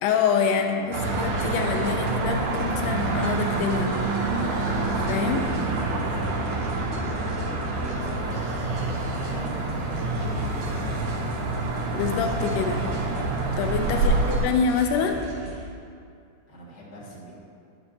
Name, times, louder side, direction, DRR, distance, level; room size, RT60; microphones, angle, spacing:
voice 1, 0.0-4.0 4.9-5.5 11.9-12.9 13.6-15.2, left 6 dB, 85° left, 5 dB, 2.1 m, -26 dB
voice 2, 0.5-1.1 5.8-11.1 11.3-11.5 14.0-14.3 16.5-17.3, equal, 35° left, -7 dB, 2.0 m, -40 dB
sound 1, 0.9-15.7, left 2 dB, 60° right, 1.7 m, -40 dB
sound 2, 0.9-14.5, right 3 dB, 80° right, 2.6 m, -27 dB
9.7 x 8.4 x 2.8 m, 2.4 s
omnidirectional pair, 3.6 m